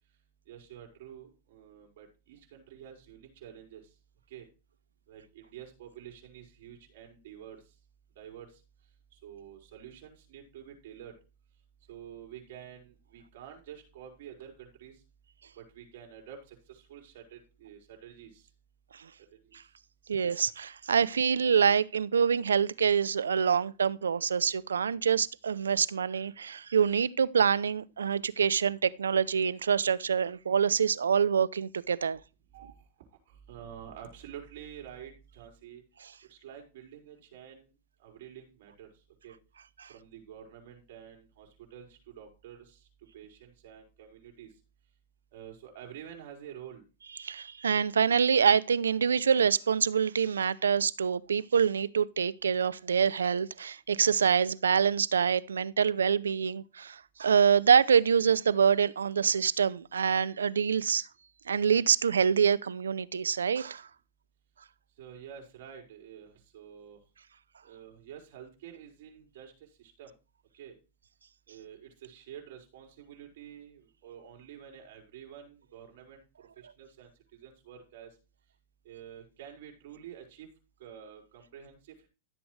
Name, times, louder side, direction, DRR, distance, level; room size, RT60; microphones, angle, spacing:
voice 1, 0.5-3.9 4.3-4.5 5.1-7.6 8.1-8.6 9.1-11.1 11.9-15.0 15.6-18.5 19.4-19.5 32.5-35.8 36.3-37.7 38.0-38.9 39.2-39.3 39.9-42.9 43.1-44.5 45.3-46.8 65.0-67.0 67.6-70.1 70.5-70.7 71.5-78.2 78.8-80.5 80.8-82.1, right 9 dB, 65° right, 4.9 m, -49 dB
voice 2, 20.1-32.2 39.8-39.9 47.2-61.1 61.5-63.9, right 7 dB, 85° right, 0.5 m, -26 dB
14.0 x 7.9 x 3.3 m
hypercardioid pair, 110°, 0 cm